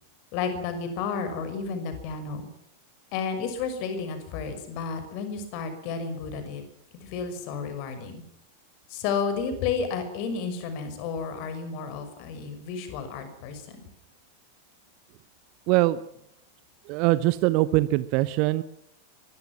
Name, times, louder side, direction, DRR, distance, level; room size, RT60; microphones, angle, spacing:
voice 1, 0.3-2.5 3.1-6.6 7.0-8.2 8.9-13.8, left 5 dB, 45° left, 9 dB, 6.0 m, -32 dB
voice 2, 15.7-16.0 16.9-18.6, right 18 dB, 45° right, 15 dB, 0.9 m, -22 dB
24.5 x 22.0 x 6.2 m, 0.70 s
figure-of-eight pair, 90°, 0 cm